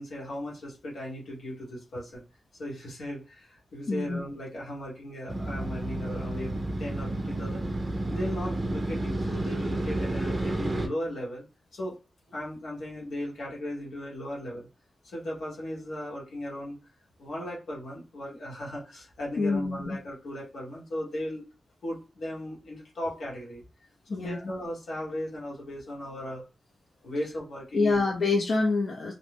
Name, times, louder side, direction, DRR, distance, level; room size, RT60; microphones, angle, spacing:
voice 1, 0.0-2.2 2.6-7.6 8.1-11.5 11.7-11.9 12.3-14.7 15.0-16.8 17.2-21.4 21.8-23.6 24.1-26.4 27.0-28.0, left 1 dB, 85° left, -3 dB, 1.1 m, -37 dB
voice 2, 3.9-4.2 19.4-20.0 24.1-24.5 27.7-29.1, left 3 dB, 60° left, 0 dB, 0.5 m, -26 dB
Motorcycle, 5.3-10.9, right 1 dB, 25° right, 0.5 m, -31 dB
2.5 x 2.0 x 3.3 m, 0.32 s
wide cardioid pair, 95°, 0 cm